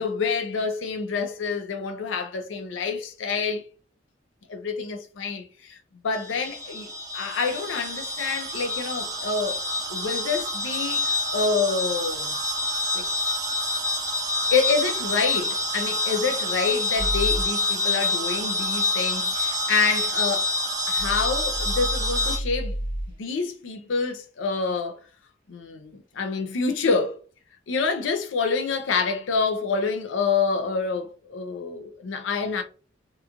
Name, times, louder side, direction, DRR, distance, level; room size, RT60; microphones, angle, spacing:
voice 1, 0.0-3.6 4.5-5.8 6.0-6.9 7.1-9.6 9.9-12.3 12.9-13.0 14.5-20.5 20.9-22.8 23.1-25.0 25.5-27.2 27.7-32.6, left 4 dB, 80° left, 0.5 m, -27 dB
sound 1, 6.1-22.4, left 2 dB, 20° right, 0.4 m, -27 dB
sound 2, 17.0-17.5 21.0-23.1, right 1 dB, 45° left, 0.8 m, -30 dB
2.9 x 2.3 x 2.4 m
head